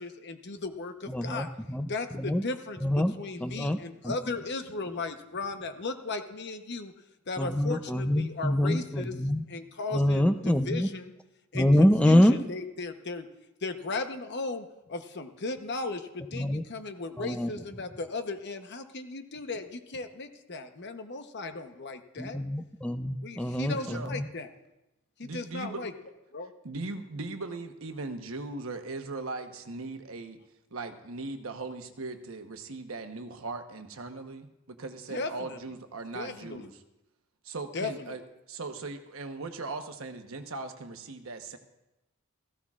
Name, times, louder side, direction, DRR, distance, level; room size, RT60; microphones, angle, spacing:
voice 1, 0.0-1.5 1.9-2.8 3.2-6.9 7.3-9.2 9.5-11.1 11.5-13.3 13.6-22.4 23.2-24.5 25.2-25.9 26.3-26.5 35.1-35.6 36.1-36.7 37.7-38.2, left 3 dB, 55° left, 7 dB, 0.9 m, -36 dB
voice 2, 1.1-1.9 2.2-2.4 2.8-3.1 3.4-3.8 4.0-4.1 7.4-9.4 9.9-10.9 11.5-12.4 16.3-16.6 17.2-17.5 22.2-24.2, left 1 dB, 5° left, 8 dB, 0.5 m, -25 dB
voice 3, 23.8-24.2 25.2-25.9 26.6-30.4 30.7-36.7 37.4-38.2 38.5-41.6, right 3 dB, 75° right, 6 dB, 1.1 m, -39 dB
17.0 x 15.0 x 2.5 m, 0.96 s
head